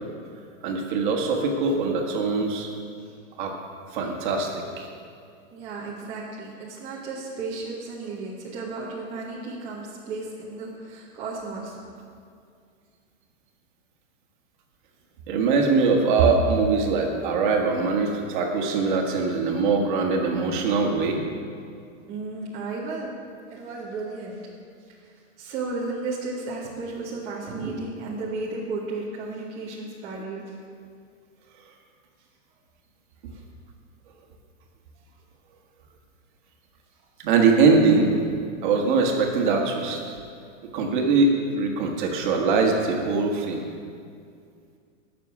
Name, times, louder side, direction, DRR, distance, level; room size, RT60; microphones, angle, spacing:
voice 1, 0.6-2.7 3.4-3.5 3.9-4.9 15.3-21.2 37.2-38.1 38.6-40.2 40.7-43.7, right 4 dB, 35° right, 2 dB, 1.7 m, -22 dB
voice 2, 5.5-11.8 22.1-23.1 23.5-24.5 24.9-25.1 25.4-30.6 33.3-33.4 40.8-40.9, right 3 dB, 15° right, -6 dB, 1.1 m, -34 dB
19.0 x 6.8 x 6.1 m, 2.3 s
supercardioid pair, 170°, 41 cm